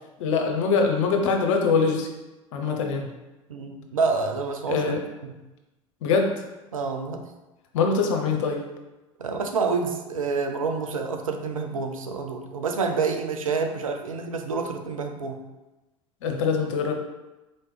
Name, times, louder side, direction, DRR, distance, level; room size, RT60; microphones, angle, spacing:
voice 1, 0.2-2.1 2.5-3.1 4.7-5.0 6.0-6.4 7.7-8.6 16.2-16.9, left 5 dB, 65° left, 3 dB, 0.7 m, -23 dB
voice 2, 3.5-4.9 5.2-5.4 6.7-7.2 9.2-15.4, right 4 dB, 85° right, 5 dB, 0.5 m, -28 dB
4.3 x 3.0 x 3.2 m, 1.0 s
figure-of-eight pair, 70°, 17 cm